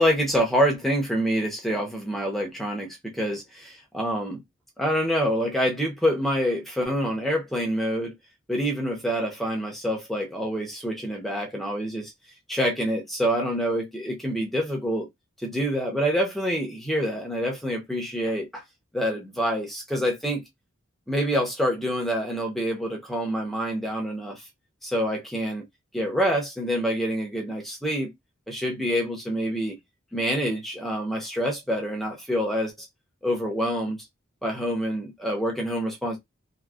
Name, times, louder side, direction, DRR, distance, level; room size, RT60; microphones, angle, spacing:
voice 1, 0.0-4.4 4.8-8.1 8.5-12.1 12.5-15.1 15.4-18.6 18.9-20.4 21.1-24.4 24.8-25.6 25.9-28.1 28.5-29.8 30.1-32.7 33.2-34.0 34.4-36.2, equal, ahead, 0.9 m, -26 dB
2.8 x 2.8 x 2.4 m
head